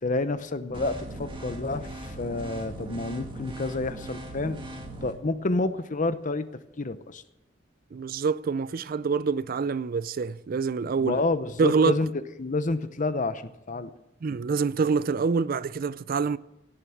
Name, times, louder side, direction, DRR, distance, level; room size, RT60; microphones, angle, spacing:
voice 1, 0.0-4.6 5.0-6.5 6.8-7.2 11.0-12.1 12.4-13.9, left 2 dB, 45° left, 0.8 m, -29 dB
sound 1, 0.7-5.1, right 1 dB, 25° right, 2.1 m, -39 dB
voice 2, 7.9-11.2 11.6-11.9 14.2-16.4, right 5 dB, 50° right, 0.4 m, -26 dB
17.0 x 9.1 x 7.2 m
head